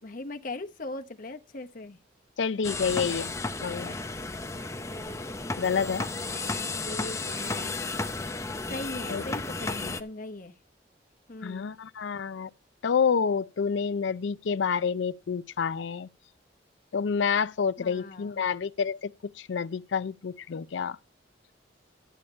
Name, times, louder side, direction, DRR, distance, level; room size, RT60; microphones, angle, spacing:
voice 1, 0.0-2.0 6.1-7.8 8.7-10.6 11.3-11.7 17.8-18.4, left 2 dB, 45° left, 0.9 m, -40 dB
voice 2, 2.4-3.3 3.6-3.9 5.6-6.1 9.1-9.2 9.8-10.0 11.4-12.5 12.8-16.1 16.9-21.0, left 6 dB, 80° left, 0.5 m, -28 dB
sound 1, 2.6-10.0, left 3 dB, 15° left, 0.8 m, -33 dB
11.0 x 8.6 x 4.3 m
head